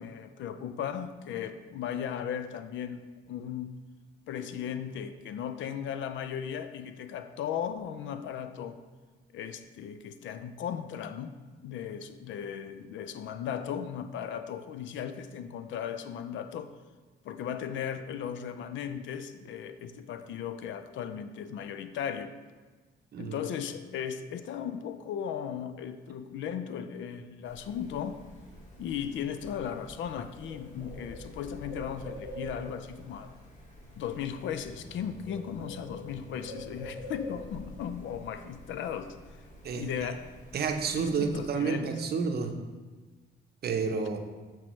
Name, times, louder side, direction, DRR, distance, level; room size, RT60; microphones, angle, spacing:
voice 1, 0.0-3.7 4.3-8.8 9.3-11.4 11.6-16.7 17.2-22.3 23.2-28.2 28.8-33.3 34.0-39.2 39.7-40.2 40.9-42.1, left 8 dB, 75° left, 11 dB, 0.4 m, -36 dB
Bird, 27.4-41.4, equal, 40° left, 1.9 m, -46 dB
voice 2, 39.6-40.1 40.5-42.5 43.6-44.2, right 5 dB, 55° right, 5 dB, 0.7 m, -30 dB
7.8 x 4.5 x 3.1 m, 1.3 s
cardioid pair, 90°, 20 cm